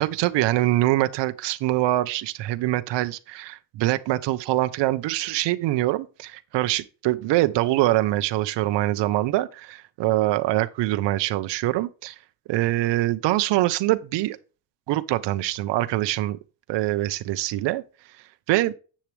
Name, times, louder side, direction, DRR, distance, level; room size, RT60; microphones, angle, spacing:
voice 1, 0.0-12.1 12.5-14.4 14.9-16.4 16.7-17.8 18.5-18.7, right 16 dB, 70° right, 0.8 m, -24 dB
10.0 x 7.5 x 3.4 m
cardioid pair, 175°, 44 cm